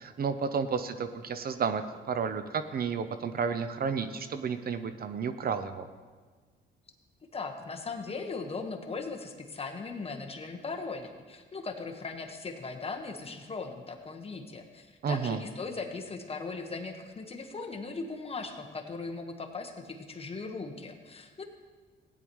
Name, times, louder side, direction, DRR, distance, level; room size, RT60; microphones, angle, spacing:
voice 1, 0.0-1.8 2.1-5.9 15.0-15.4, right 6 dB, 50° right, 10 dB, 0.7 m, -31 dB
voice 2, 7.3-21.4, left 4 dB, 30° left, 3 dB, 1.3 m, -38 dB
16.0 x 9.8 x 3.1 m, 1.5 s
cardioid pair, 90°, 20 cm